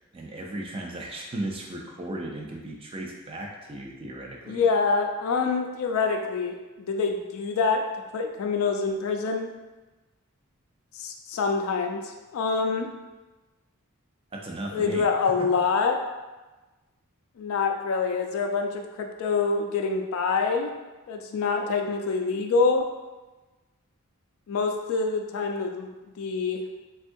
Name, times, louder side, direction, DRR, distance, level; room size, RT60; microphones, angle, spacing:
voice 1, 0.1-4.6 14.3-15.0 15.4-15.5, right 1 dB, 25° right, 0 dB, 0.3 m, -35 dB
voice 2, 4.5-7.8 8.1-9.5 10.9-12.9 14.7-16.0 17.4-20.7 21.1-22.9 24.5-25.9 26.2-26.6, left 4 dB, 70° left, 3 dB, 0.3 m, -26 dB
3.6 x 2.3 x 2.6 m, 1.2 s
head